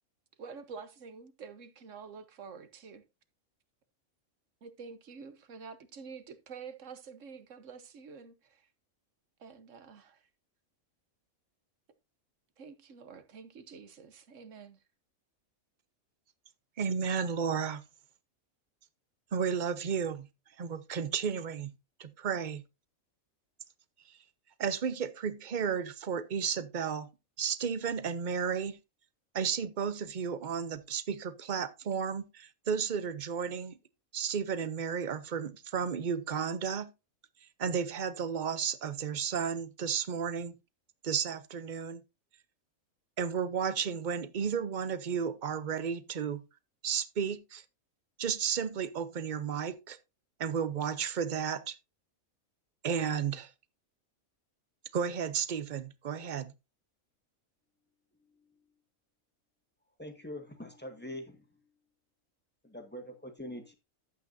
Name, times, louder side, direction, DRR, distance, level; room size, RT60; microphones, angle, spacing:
voice 1, 0.4-3.0 4.6-8.7 9.4-10.3 12.6-14.8, right 5 dB, 65° right, 1.4 m, -48 dB
voice 2, 16.8-17.8 19.3-20.3 20.6-21.7 22.0-22.6 24.6-27.1 27.4-28.8 29.3-33.8 34.1-36.9 37.6-40.5 41.0-42.0 43.2-46.4 46.8-47.6 48.2-50.0 50.4-51.8 52.8-53.5 54.9-56.5, right 7 dB, 45° right, 0.7 m, -33 dB
voice 3, 60.0-61.5 62.6-63.7, left 1 dB, 5° left, 1.6 m, -43 dB
12.0 x 8.3 x 2.7 m
omnidirectional pair, 1.4 m